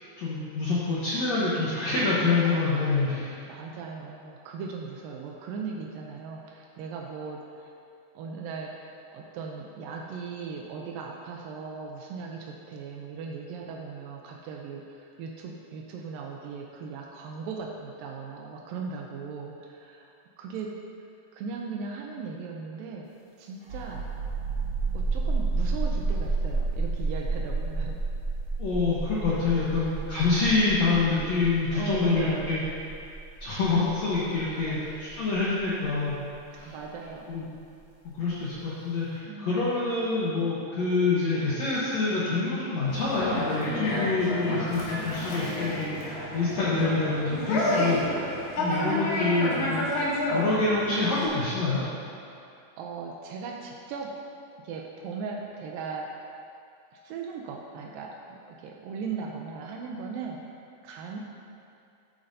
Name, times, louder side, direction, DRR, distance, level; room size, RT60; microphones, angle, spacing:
voice 1, 0.2-3.5 28.6-32.6 33.4-36.2 36.5-36.7 37.3-37.5 38.2-48.0 48.3-49.8 50.3-51.8, left 3 dB, 75° left, -9 dB, 1.6 m, -26 dB
voice 2, 2.0-7.7 8.2-20.8 21.3-23.1 23.4-24.1 24.9-28.0 31.7-32.6 34.7-34.9 36.6-37.4 39.2-39.7 43.8-44.2 48.5-49.3 52.5-54.1 54.6-56.1 56.9-61.2, right 5 dB, 85° right, 0 dB, 2.0 m, -38 dB
sound 1, 23.6-37.0, right 3 dB, 60° right, 1.6 m, -31 dB
Conversation, 42.9-51.3, left 1 dB, 55° left, 2.5 m, -30 dB
11.0 x 8.9 x 2.8 m, 2.5 s
omnidirectional pair, 4.8 m